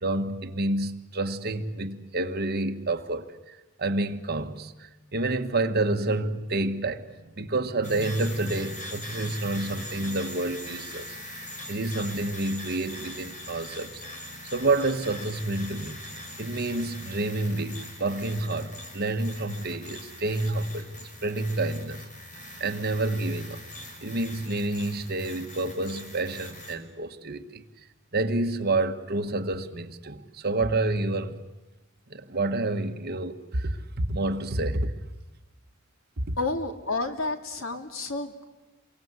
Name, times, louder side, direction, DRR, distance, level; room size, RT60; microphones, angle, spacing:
voice 1, 0.0-7.0 7.4-11.1 11.3-14.0 14.4-16.0 16.4-20.9 21.2-22.0 22.6-23.6 24.0-27.6 28.1-31.4 32.1-34.9 36.3-36.4, right 2 dB, 50° right, 1.5 m, -29 dB
sound 1, 7.8-26.8, left 1 dB, 40° left, 5.4 m, -42 dB
voice 2, 36.4-38.4, left 3 dB, 85° left, 2.7 m, -30 dB
28.5 x 23.5 x 8.2 m
head